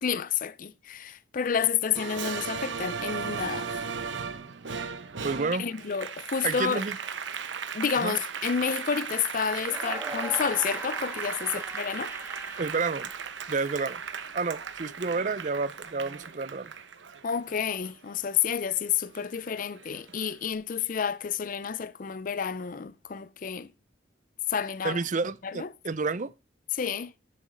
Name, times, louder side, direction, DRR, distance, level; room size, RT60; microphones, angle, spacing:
voice 1, 0.0-3.9 5.6-6.8 7.7-12.1 17.2-23.7 24.5-25.0 25.4-25.7 26.7-27.1, left 7 dB, 45° left, 0.5 m, -30 dB
Applause, 1.9-18.8 19.2-20.3, right 6 dB, 85° right, 1.0 m, -36 dB
voice 2, 5.2-5.7 6.4-7.0 8.0-8.1 12.6-13.1 13.5-14.0 14.3-16.7 24.8-26.3, right 4 dB, 45° right, 0.5 m, -30 dB
sound 1, 9.6-13.8, right 1 dB, 15° right, 1.8 m, -40 dB
11.0 x 6.2 x 5.1 m
head